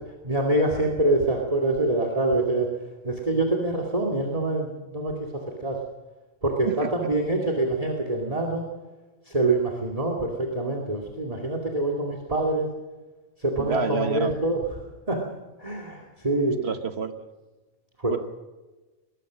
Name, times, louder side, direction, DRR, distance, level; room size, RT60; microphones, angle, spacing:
voice 1, 0.2-2.7 3.0-5.8 6.4-8.6 9.3-12.7 13.4-14.6 15.1-15.2 15.6-16.6 18.0-18.2, right 2 dB, 30° right, 2 dB, 2.6 m, -25 dB
voice 2, 13.6-14.3 16.6-17.3 18.1-18.2, right 5 dB, 55° right, 9 dB, 1.6 m, -28 dB
22.0 x 20.0 x 6.3 m, 1.2 s
omnidirectional pair, 1.3 m